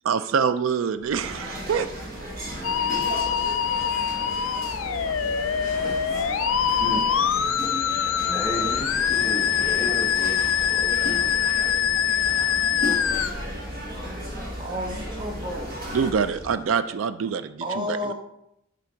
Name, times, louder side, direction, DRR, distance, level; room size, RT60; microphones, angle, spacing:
voice 1, 0.0-1.9 15.9-18.1, right 6 dB, 75° right, 12 dB, 0.4 m, -25 dB
sound 1, 1.0-16.8, equal, ahead, 2.5 m, -40 dB
sound 2, 1.1-16.1, equal, 50° right, 1.6 m, -36 dB
Musical instrument, 2.6-13.3, left 8 dB, 85° left, 0.5 m, -24 dB
voice 2, 6.6-7.0 8.3-11.0, left 1 dB, 20° left, -1 dB, 2.1 m, -33 dB
voice 3, 14.6-15.7 17.6-18.1, left 1 dB, 25° right, 1 dB, 1.0 m, -31 dB
10.5 x 3.7 x 4.5 m, 0.78 s
head